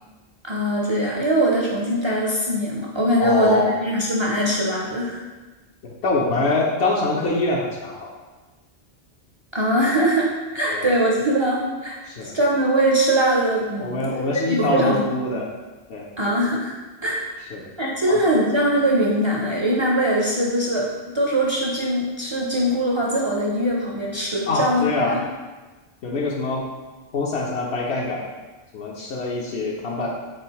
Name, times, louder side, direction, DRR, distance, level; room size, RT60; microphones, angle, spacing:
voice 1, 0.4-5.2 9.5-10.3 10.5-14.1 14.5-15.0 15.3-15.4 16.2-16.7 17.0-17.3 17.8-20.9 21.1-25.2, right 1 dB, 40° right, -3 dB, 0.4 m, -22 dB
voice 2, 3.2-3.7 5.8-8.1 10.7-10.9 12.1-12.3 13.8-15.5 15.9-16.0 17.5-17.7 18.1-18.2 24.5-25.2 26.0-26.7 27.1-28.2 28.7-30.1, left 2 dB, 75° left, -3 dB, 0.9 m, -24 dB
3.4 x 3.2 x 4.5 m, 1.2 s
omnidirectional pair, 1.1 m